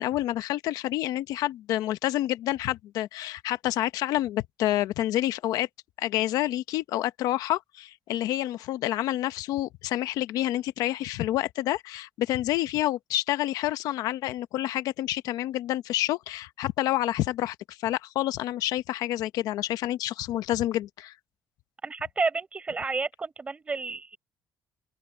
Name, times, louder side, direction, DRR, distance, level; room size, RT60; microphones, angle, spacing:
voice 1, 0.0-5.7 6.0-21.1, left 14 dB, 85° left, 0.8 m, -28 dB
voice 2, 21.8-24.2, right 4 dB, 20° right, 4.7 m, -30 dB
open air
cardioid pair, 150°, 6 cm